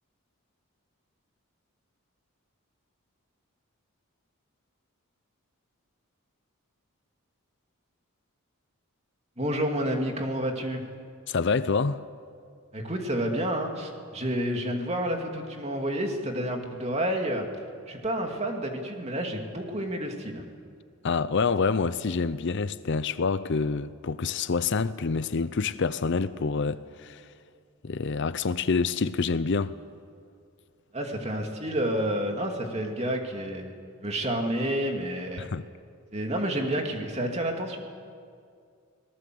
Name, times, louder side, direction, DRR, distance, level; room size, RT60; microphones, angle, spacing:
voice 1, 9.4-10.8 12.7-17.5 17.9-20.4 30.9-35.5 36.1-37.8, right 1 dB, 30° right, 2.6 m, -29 dB
voice 2, 11.3-12.0 21.0-27.2 27.8-29.7 35.4-35.6, left 4 dB, 55° left, 0.6 m, -27 dB
25.5 x 19.0 x 7.8 m
head